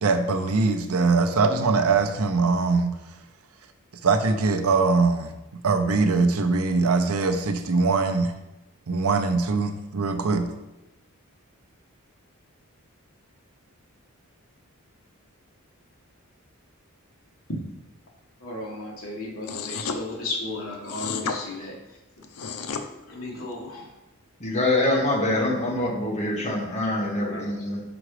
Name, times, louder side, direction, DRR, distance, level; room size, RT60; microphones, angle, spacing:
voice 1, 0.0-2.9 4.0-5.3 5.6-8.3 8.9-10.5, right 4 dB, 75° right, 7 dB, 0.7 m, -22 dB
voice 2, 18.4-21.7 23.1-23.9 26.7-27.7, left 2 dB, 65° left, -2 dB, 1.8 m, -35 dB
sound 1, 19.4-20.0 20.9-21.4 22.2-22.8, left 5 dB, 85° left, 0.7 m, -31 dB
voice 3, 24.4-27.8, left 1 dB, 30° left, -2 dB, 1.5 m, -25 dB
6.1 x 5.0 x 4.9 m, 0.97 s
head